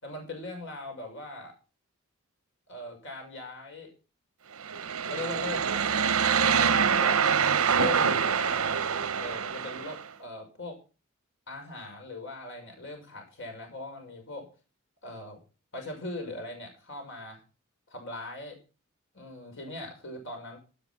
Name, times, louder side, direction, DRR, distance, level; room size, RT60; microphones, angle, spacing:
voice 1, 0.0-1.5 2.7-3.9 5.0-7.2 7.7-8.8 9.1-10.8 11.5-14.5 15.0-15.4 15.7-17.4 17.9-18.6 19.1-20.6, left 2 dB, 60° left, 3 dB, 6.1 m, -40 dB
sound 1, 4.6-10.0, right 6 dB, 75° right, 0.9 m, -25 dB
16.5 x 8.1 x 5.9 m, 0.34 s
head